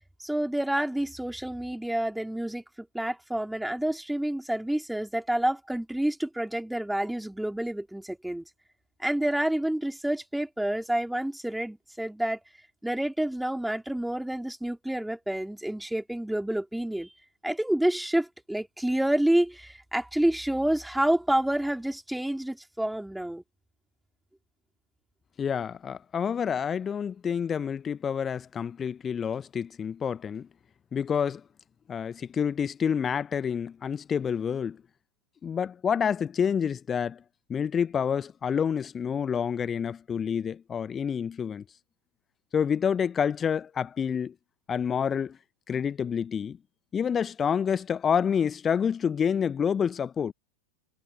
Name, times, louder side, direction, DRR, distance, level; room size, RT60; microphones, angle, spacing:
voice 1, 0.2-8.4 9.0-12.4 12.8-17.1 17.4-23.4, right 1 dB, 5° right, 4.3 m, -28 dB
voice 2, 25.4-30.5 30.9-31.4 31.9-34.8 35.4-37.2 37.5-41.6 42.5-44.3 44.7-45.4 45.7-46.6 46.9-50.3, left 7 dB, 25° left, 1.1 m, -28 dB
figure-of-eight pair, 85°, 0 cm